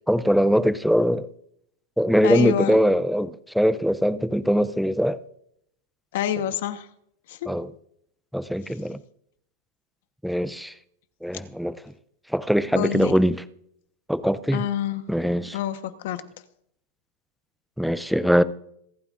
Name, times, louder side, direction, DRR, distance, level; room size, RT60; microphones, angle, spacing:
voice 1, 0.1-1.3 2.0-5.2 7.5-7.7 8.3-9.0 10.2-10.7 11.2-11.8 12.3-13.4 14.1-14.6 15.1-15.6 17.8-18.4, equal, ahead, 0.4 m, -22 dB
voice 2, 2.2-2.8 6.1-6.9 7.3-7.5 12.7-13.2 14.5-15.1 15.5-16.3, left 10 dB, 60° left, 1.1 m, -27 dB
26.5 x 9.1 x 2.5 m
supercardioid pair, 165°, 0 cm